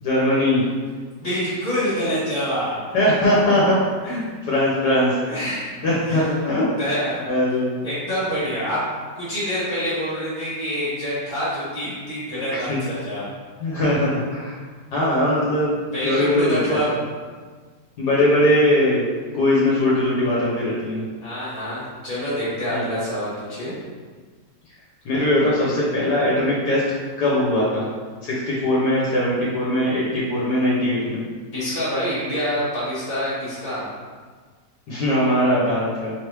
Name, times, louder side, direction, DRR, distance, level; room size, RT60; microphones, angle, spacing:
voice 1, 0.0-0.6 2.9-5.2 5.8-6.6 7.3-7.9 12.7-12.8 13.6-14.6 14.9-15.8 16.0-16.8 18.0-19.0 19.3-21.0 22.7-22.8 25.0-26.8 27.2-27.9 28.2-31.2 34.9-36.1, left 1 dB, 75° left, -7 dB, 1.5 m, -20 dB
voice 2, 1.2-2.8 4.1-4.2 5.3-5.7 6.1-6.2 6.8-7.3 7.8-8.8 9.1-13.3 15.9-16.9 21.2-23.7 31.5-33.8, equal, 20° left, -10 dB, 1.1 m, -26 dB
3.4 x 3.4 x 3.3 m, 1.5 s
omnidirectional pair, 1.8 m